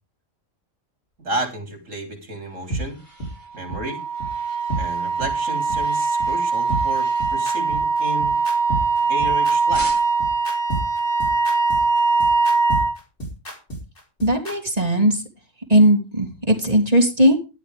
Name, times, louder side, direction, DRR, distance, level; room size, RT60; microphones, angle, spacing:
voice 1, 1.2-3.0 3.5-4.0 4.8-8.4 9.1-10.0, right 1 dB, 80° right, 3 dB, 4.0 m, -32 dB
sound 1, 2.1-9.3 9.7-10.4, equal, 40° left, 7.7 m, -44 dB
sound 2, 2.7-2.8 3.2-3.3 3.7-3.8 4.2-4.3 4.7-4.8 5.2-5.3 5.7-5.8 6.2-6.3 6.7-14.6, right 2 dB, 60° left, 5.1 m, -29 dB
Wind instrument woodwind instrument, 3.5-13.0, right 4 dB, 20° left, 2.0 m, -21 dB
voice 2, 14.2-15.2 15.7-17.4, equal, 30° right, 3 dB, 3.0 m, -18 dB
12.5 x 12.0 x 3.4 m, 0.29 s
omnidirectional pair, 1.3 m